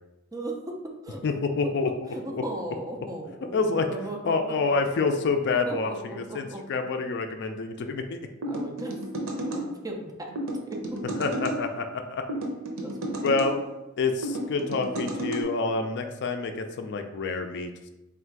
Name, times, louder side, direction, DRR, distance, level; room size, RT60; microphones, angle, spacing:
voice 1, 1.2-1.9 2.3-2.4 3.5-3.9 4.2-8.2 11.2-12.2 13.2-13.6 14.0-17.7, left 4 dB, 55° left, 6 dB, 0.4 m, -27 dB
voice 2, 2.1-4.6 5.7-6.6 8.5-9.0 9.4-10.3 10.7-11.0 12.8-13.3, right 1 dB, 20° right, 1 dB, 0.5 m, -37 dB
sound 1, 8.4-9.7 10.4-11.6 12.3-13.5 14.2-15.4, right 1 dB, 80° right, 0.7 m, -32 dB
3.5 x 2.4 x 4.5 m, 0.97 s
head